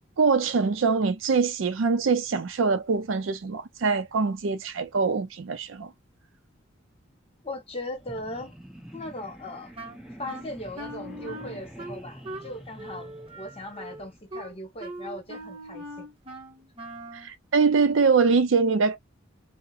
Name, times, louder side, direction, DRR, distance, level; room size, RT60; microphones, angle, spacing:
voice 1, 0.2-5.9 17.2-19.0, right 4 dB, 70° right, 0.5 m, -23 dB
voice 2, 7.4-8.5 8.9-9.7 10.2-16.1, left 1 dB, 30° left, 1.1 m, -38 dB
sound 1, 8.0-14.2, equal, 5° right, 0.8 m, -46 dB
Wind instrument woodwind instrument, 9.8-17.3, right 1 dB, 30° right, 0.9 m, -41 dB
2.7 x 2.1 x 2.4 m
head